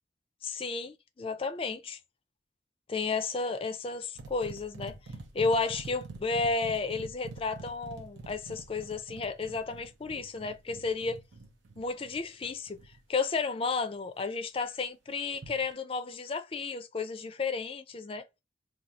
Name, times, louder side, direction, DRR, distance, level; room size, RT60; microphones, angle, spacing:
voice 1, 0.4-2.0 2.9-4.9 5.3-11.2 11.8-12.8 13.1-18.2, left 4 dB, 30° left, 0.4 m, -32 dB
sound 1, 4.2-13.0 15.3-15.7, right 3 dB, 85° right, 0.8 m, -46 dB
2.7 x 2.3 x 4.1 m
head